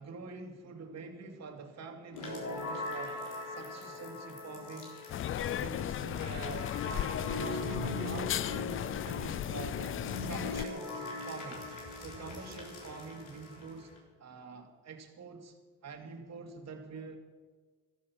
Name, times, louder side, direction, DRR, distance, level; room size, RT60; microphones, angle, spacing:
voice 1, 0.0-3.2 3.5-5.0 5.4-10.0 10.3-11.6 12.0-13.9 14.2-15.5 15.8-17.2, right 4 dB, 60° right, 4 dB, 2.5 m, -46 dB
sound 1, 2.1-14.0, left 2 dB, 85° left, 3.9 m, -41 dB
sound 2, 5.1-10.7, left 11 dB, 45° left, 0.4 m, -35 dB
14.5 x 13.5 x 5.9 m, 1.5 s
cardioid pair, 90°, 30 cm